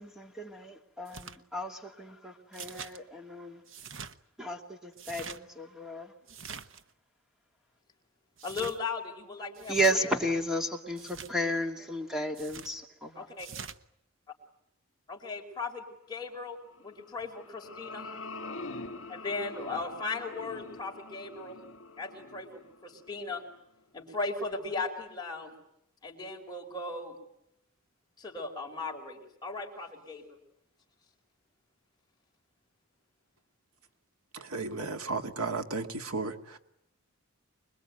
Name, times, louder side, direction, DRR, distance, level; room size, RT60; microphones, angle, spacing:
voice 1, 0.0-3.6 4.4-6.1 9.7-13.3, equal, ahead, 4 dB, 2.6 m, -33 dB
sound 1, 1.1-1.4 2.5-3.0 3.7-4.1 4.9-5.4 6.3-6.8 8.4-8.8 9.5-9.9 11.0-11.3 12.3-12.7 13.4-13.8, right 6 dB, 60° right, 1.1 m, -44 dB
voice 2, 8.4-10.1 13.1-13.5 15.1-18.1 19.1-21.6 22.0-23.4 23.9-25.5 26.0-27.2 28.2-30.4, left 3 dB, 20° left, 0 dB, 4.7 m, -37 dB
sound 2, 17.0-23.5, left 2 dB, 60° left, 2.3 m, -44 dB
voice 3, 34.3-36.6, right 3 dB, 90° right, 7 dB, 1.9 m, -34 dB
26.0 x 22.0 x 9.3 m, 0.80 s
head